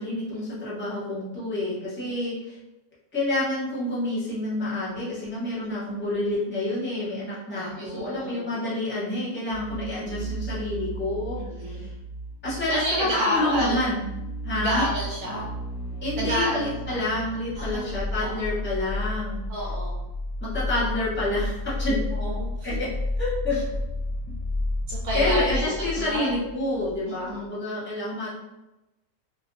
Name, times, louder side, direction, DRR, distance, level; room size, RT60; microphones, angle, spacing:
voice 1, 0.0-2.6 3.1-11.4 11.7-11.9 12.4-14.1 14.4-14.9 16.0-19.4 20.4-22.0 22.6-22.9 23.2-23.6 25.1-28.3, left 2 dB, 10° left, -8 dB, 0.6 m, -28 dB
voice 2, 7.5-8.5 10.1-10.2 11.4-11.9 12.7-13.8 14.5-15.5 16.2-17.0 17.6-17.9 18.2-18.3 19.5-19.9 22.1-22.5 24.9-25.6 26.0-26.3 27.1-27.5, equal, 70° right, -4 dB, 1.0 m, -29 dB
sound 1, 9.5-27.0 27.3-27.4, left 1 dB, 70° left, 0.9 m, -32 dB
2.8 x 2.1 x 2.5 m, 0.95 s
omnidirectional pair, 1.5 m